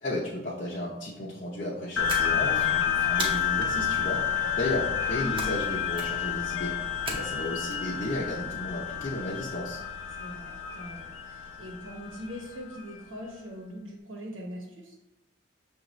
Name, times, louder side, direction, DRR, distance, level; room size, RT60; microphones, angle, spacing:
voice 1, 0.0-4.2 4.5-6.7 7.1-9.8, left 1 dB, 40° left, -6 dB, 0.6 m, -34 dB
sound 1, 2.0-12.8, left 8 dB, 85° left, 0.6 m, -30 dB
sound 2, 2.1-2.7 3.2-3.8 5.4-5.7 5.9-6.4 7.1-7.7, right 2 dB, 30° right, 0.7 m, -36 dB
voice 2, 10.2-14.9, equal, 85° right, -1 dB, 1.1 m, -41 dB
6.4 x 2.5 x 3.0 m, 0.90 s
head